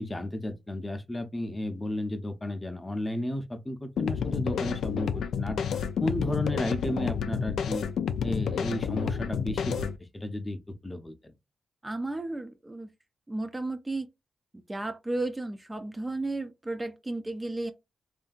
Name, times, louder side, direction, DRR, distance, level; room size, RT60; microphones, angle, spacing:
voice 1, 0.0-7.9 8.2-9.9 10.1-10.6 10.8-11.3, left 1 dB, 20° left, 0.6 m, -33 dB
sound 1, 4.0-10.0, left 7 dB, 80° left, 0.3 m, -30 dB
voice 2, 11.8-12.9 13.3-14.1 14.5-17.7, right 2 dB, 20° right, 0.5 m, -33 dB
2.7 x 2.5 x 2.4 m
supercardioid pair, 50°, 0 cm